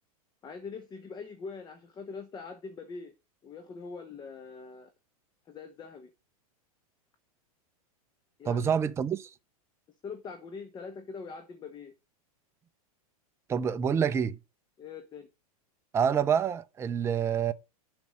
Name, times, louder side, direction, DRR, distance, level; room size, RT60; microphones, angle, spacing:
voice 1, 0.4-3.1 3.4-4.9 5.5-6.1 8.4-8.7 10.0-11.9 14.8-15.3, left 5 dB, 20° left, 1.0 m, -43 dB
voice 2, 8.5-9.3 13.5-14.4 15.9-17.5, right 7 dB, 15° right, 0.5 m, -27 dB
7.3 x 5.3 x 6.2 m
hypercardioid pair, 120°, 19 cm